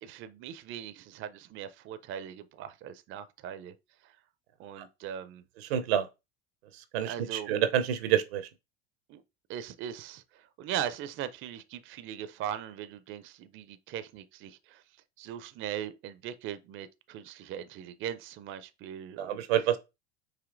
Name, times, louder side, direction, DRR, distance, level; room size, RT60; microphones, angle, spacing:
voice 1, 0.0-3.7 4.0-4.1 4.6-5.4 7.0-7.5 9.1-9.2 9.5-14.8 15.2-19.4, right 10 dB, 40° right, 0.5 m, -39 dB
voice 2, 5.7-6.1 6.9-8.5 19.2-19.8, right 10 dB, 80° right, 0.7 m, -27 dB
5.0 x 2.7 x 2.5 m
hypercardioid pair, 85°, 31 cm